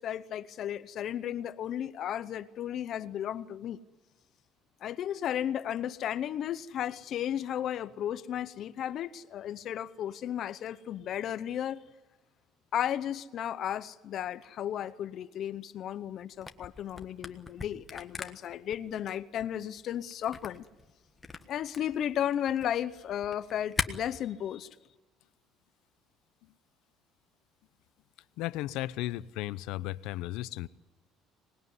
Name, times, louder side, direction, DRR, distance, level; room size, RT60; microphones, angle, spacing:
voice 1, 0.0-3.8 4.8-11.8 12.7-20.7 21.5-24.7, left 10 dB, 45° left, 14 dB, 0.8 m, -34 dB
Camera, 16.3-23.9, left 4 dB, 15° left, 1.4 m, -40 dB
voice 2, 28.4-30.7, left 16 dB, 75° left, 16 dB, 0.8 m, -35 dB
25.5 x 20.0 x 9.6 m, 1.3 s
cardioid pair, 155°, 0 cm